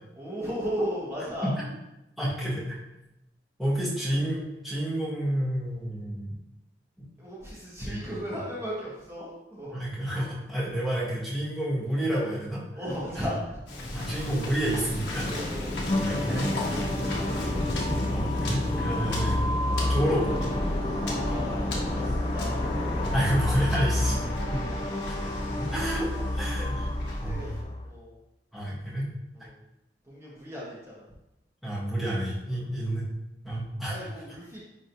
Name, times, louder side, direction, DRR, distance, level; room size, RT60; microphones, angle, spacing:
voice 1, 0.1-1.6 7.2-9.7 10.9-11.0 12.7-13.6 15.2-17.7 21.0-22.7 26.2-26.3 26.9-28.2 29.3-29.6 30.0-31.0 32.5-32.7 33.9-34.6, equal, 15° right, -7 dB, 1.5 m, -36 dB
voice 2, 2.2-2.8 3.6-6.3 7.0-7.1 7.8-8.0 9.7-12.6 13.9-15.3 16.0-16.5 18.1-19.3 19.9-20.3 23.1-24.2 25.7-26.1 26.4-26.9 27.2-27.4 28.5-29.1 31.6-33.1 33.4-33.9, right 1 dB, ahead, -9 dB, 1.5 m, -29 dB
Waves surf, 13.7-27.6, left 1 dB, 75° left, 1.4 m, -32 dB
sound 1, 15.9-27.8, left 1 dB, 30° left, 0.5 m, -31 dB
10.5 x 3.8 x 2.7 m, 0.93 s
head